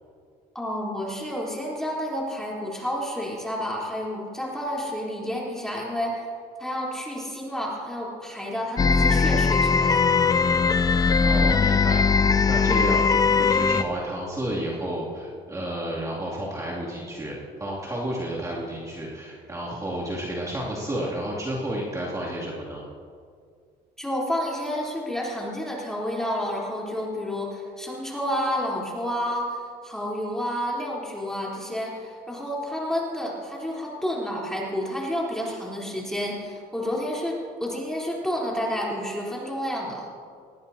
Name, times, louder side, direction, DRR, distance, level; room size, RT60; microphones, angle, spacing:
voice 1, 0.5-6.3 6.6-10.0 24.0-40.1, equal, 5° left, -4 dB, 3.7 m, -30 dB
sound 1, 8.8-13.8, left 5 dB, 20° left, 0.4 m, -20 dB
voice 2, 11.2-12.2 12.5-22.8, right 1 dB, 20° right, -6 dB, 2.7 m, -31 dB
20.0 x 15.5 x 2.8 m, 2.2 s
cardioid pair, 110°, 17 cm